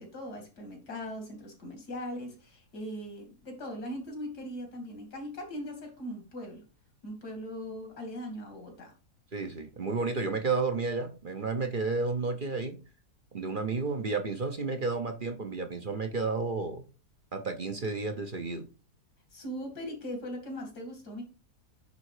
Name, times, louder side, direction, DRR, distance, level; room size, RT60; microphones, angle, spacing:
voice 1, 0.0-6.6 7.0-8.9 19.3-21.2, equal, 85° left, 3 dB, 3.2 m, -40 dB
voice 2, 9.3-12.8 13.3-16.8 17.3-18.7, right 4 dB, 40° right, 6 dB, 0.8 m, -31 dB
9.6 x 3.7 x 4.9 m, 0.34 s
omnidirectional pair, 1.7 m